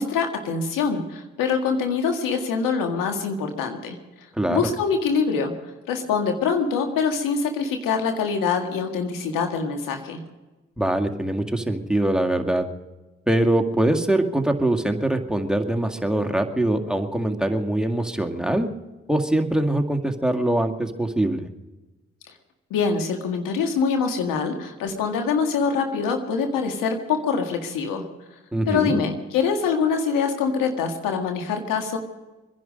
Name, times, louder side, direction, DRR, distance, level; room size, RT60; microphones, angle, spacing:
voice 1, 0.0-4.0 4.5-5.5 5.9-10.2 22.7-28.1 28.7-32.0, left 5 dB, 80° left, 4 dB, 1.9 m, -24 dB
voice 2, 10.8-12.7 13.3-18.7 19.1-21.5 28.5-29.0, right 1 dB, ahead, 5 dB, 2.1 m, -23 dB
25.0 x 11.0 x 5.3 m, 1.1 s
hypercardioid pair, 40°, 33 cm